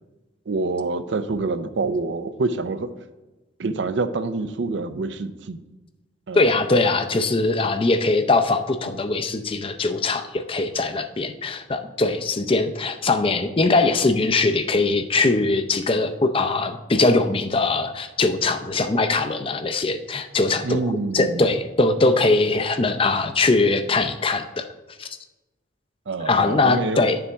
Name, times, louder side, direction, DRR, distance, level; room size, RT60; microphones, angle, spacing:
voice 1, 0.5-2.9 3.6-5.6 6.3-6.5 20.6-21.5 26.1-27.1, right 3 dB, 70° right, 12 dB, 0.5 m, -26 dB
voice 2, 6.3-20.9 21.1-24.6 25.0-25.1 26.3-27.2, left 3 dB, 30° left, 8 dB, 0.5 m, -21 dB
10.5 x 7.0 x 3.5 m, 1.1 s
head